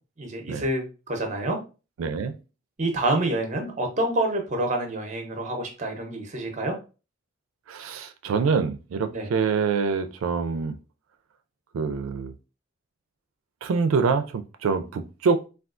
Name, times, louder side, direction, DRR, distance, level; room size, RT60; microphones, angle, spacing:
voice 1, 0.2-1.6 2.8-6.8 9.1-9.3, right 1 dB, 35° right, 0.7 m, -27 dB
voice 2, 2.0-2.3 7.7-10.7 11.7-12.3 13.6-15.4, right 5 dB, 90° right, 0.4 m, -25 dB
3.5 x 2.3 x 2.4 m
head